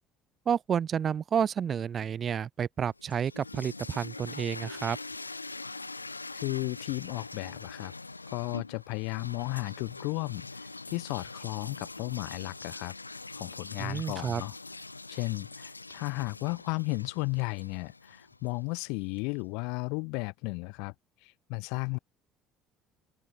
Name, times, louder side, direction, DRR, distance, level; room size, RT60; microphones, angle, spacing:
voice 1, 0.4-5.0 13.8-14.4, right 8 dB, 40° right, 1.6 m, -30 dB
sound 1, 2.9-18.9, left 3 dB, 90° left, 0.6 m, -43 dB
voice 2, 6.3-7.9 8.3-12.9 13.3-14.5 15.1-20.9 21.2-22.0, left 33 dB, 60° left, 1.0 m, -34 dB
open air
figure-of-eight pair, 55°, 0 cm